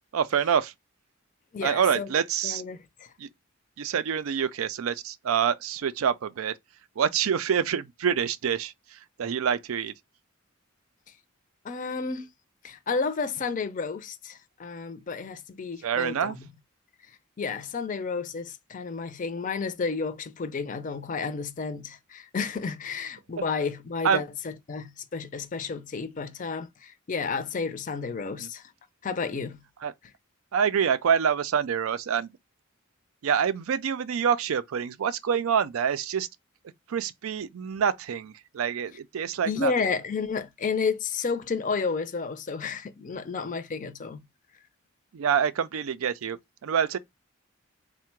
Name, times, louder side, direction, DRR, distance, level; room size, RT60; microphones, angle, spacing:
voice 1, 0.1-0.7 1.6-2.6 3.2-3.3 3.8-6.5 7.0-9.9 15.8-16.4 24.0-24.2 28.4-28.5 29.8-29.9 30.5-32.3 33.2-36.3 36.9-39.7 45.1-47.0, right 7 dB, 85° right, 0.4 m, -26 dB
voice 2, 1.5-2.1 2.4-3.1 11.6-12.3 12.6-16.4 17.4-28.7 29.0-29.6 39.5-44.2, left 5 dB, 40° left, 0.5 m, -31 dB
3.7 x 2.1 x 4.4 m
head